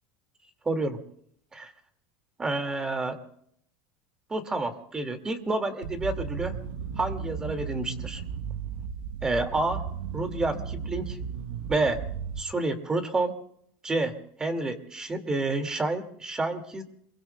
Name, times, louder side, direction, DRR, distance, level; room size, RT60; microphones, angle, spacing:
voice 1, 0.7-1.0 1.5-1.7 2.4-3.2 4.3-6.6 7.0-8.2 9.2-9.8 10.1-11.2 11.7-12.0 12.4-13.4 13.8-16.8, right 2 dB, 15° right, 6 dB, 2.1 m, -29 dB
sound 1, 5.8-12.4, right 7 dB, 85° right, 1.0 m, -35 dB
28.0 x 23.0 x 2.2 m, 0.68 s
supercardioid pair, 135°, 5 cm